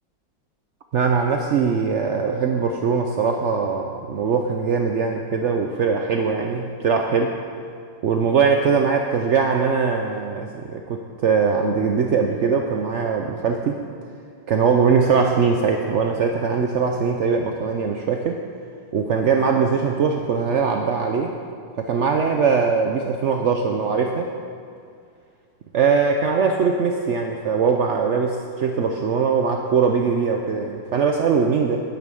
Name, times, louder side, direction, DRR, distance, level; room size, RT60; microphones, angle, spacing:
voice 1, 0.9-7.4 8.0-13.8 14.5-18.4 18.9-21.4 21.8-24.3 25.7-31.8, right 5 dB, 70° right, 3 dB, 0.7 m, -21 dB
9.5 x 9.2 x 7.6 m, 2.3 s
omnidirectional pair, 2.1 m